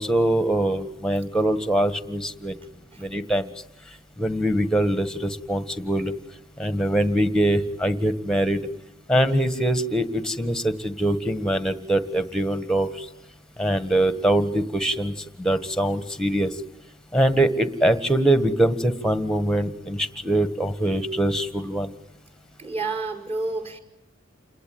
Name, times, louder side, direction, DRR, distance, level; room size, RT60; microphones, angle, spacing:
voice 1, 0.0-2.6 3.0-3.5 4.2-6.1 6.6-8.7 9.1-13.1 13.6-16.6 17.1-21.9, right 1 dB, 5° left, 11 dB, 1.7 m, -23 dB
voice 2, 22.6-23.8, right 3 dB, 30° right, 5 dB, 5.3 m, -29 dB
29.0 x 21.5 x 9.5 m, 0.83 s
head